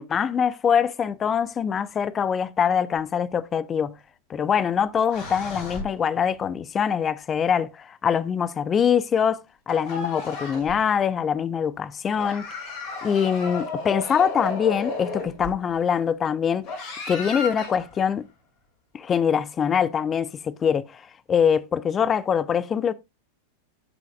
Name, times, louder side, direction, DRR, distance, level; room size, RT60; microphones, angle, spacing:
voice 1, 0.0-3.9 4.3-12.5 13.0-16.7 17.1-18.3 18.9-21.0 21.3-22.9, left 7 dB, 25° left, 0.5 m, -23 dB
sound 1, 5.1-6.2 9.7-10.8 12.2-15.7 16.6-18.0, left 3 dB, 45° left, 4.3 m, -33 dB
15.5 x 5.7 x 2.3 m
figure-of-eight pair, 90°, 0 cm